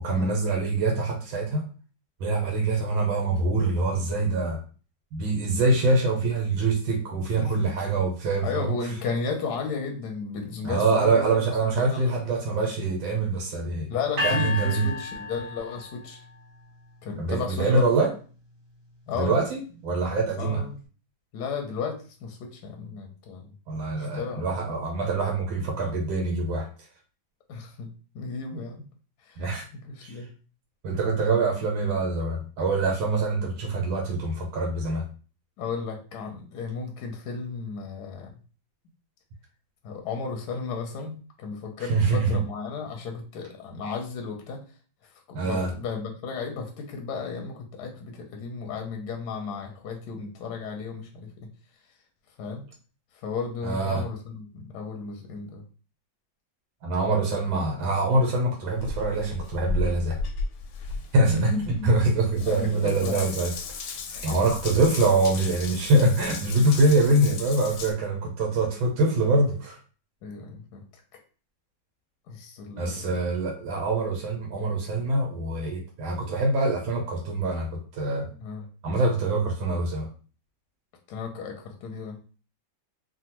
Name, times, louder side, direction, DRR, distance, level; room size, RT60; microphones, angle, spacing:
voice 1, 0.0-1.6 2.2-4.6 5.1-8.7 10.6-13.9 14.2-14.9 17.2-18.1 19.1-20.6 23.7-26.7 29.4-29.7 30.0-30.2 30.8-35.0 41.8-42.4 45.3-45.7 53.6-54.0 56.8-60.2 61.1-63.5 64.2-69.8 72.8-78.3 78.8-80.1, right 2 dB, 80° right, 0 dB, 1.5 m, -24 dB
voice 2, 7.4-7.7 8.4-12.3 13.9-16.2 17.0-17.9 19.1-19.4 20.4-20.8 21.3-23.5 24.0-24.4 27.5-28.8 29.2-29.4 29.7-30.3 33.8-34.0 35.6-38.3 39.8-44.6 45.3-51.5 52.4-52.6 53.2-55.6 61.3-61.9 62.4-63.4 64.1-64.4 67.1-67.2 70.2-70.8 72.3-73.1 78.4-78.7 81.1-82.2, left 4 dB, 70° left, 2 dB, 1.0 m, -34 dB
sound 1, 14.2-16.3, left 3 dB, 40° right, 0.8 m, -31 dB
Water tap faucet / Bathtub (filling or washing) / Drip, 58.7-67.9, left 3 dB, 85° left, 1.4 m, -35 dB
3.4 x 2.1 x 2.9 m, 0.38 s
omnidirectional pair, 2.2 m